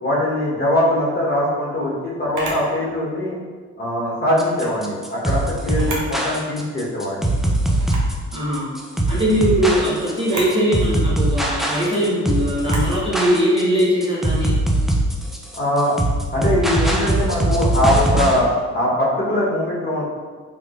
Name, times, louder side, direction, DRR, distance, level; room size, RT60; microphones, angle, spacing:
voice 1, 0.0-3.4 3.8-7.3 15.5-15.9 16.3-20.0, left 1 dB, 30° left, -7 dB, 1.1 m, -21 dB
Camera, 2.3-2.7 4.4-4.7 5.7-6.2 6.6-6.7 7.8-8.1 10.2-10.6 12.6-12.9, right 2 dB, 85° right, 0.8 m, -31 dB
sound 1, 4.4-18.4, right 1 dB, ahead, 0.4 m, -21 dB
voice 2, 8.3-8.7 9.1-14.6, equal, 15° right, -8 dB, 1.0 m, -20 dB
3.3 x 3.0 x 2.4 m, 1.5 s
cardioid pair, 90°, 30 cm